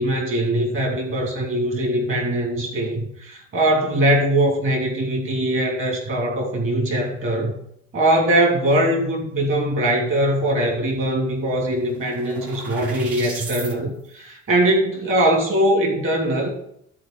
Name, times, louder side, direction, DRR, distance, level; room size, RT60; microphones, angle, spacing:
voice 1, 0.0-7.5 7.9-16.5, right 1 dB, 40° right, 1 dB, 3.1 m, -21 dB
sound 1, 11.2-13.7, right 3 dB, 60° right, 2.9 m, -36 dB
12.5 x 4.2 x 6.3 m, 0.73 s
hypercardioid pair, 60°, 33 cm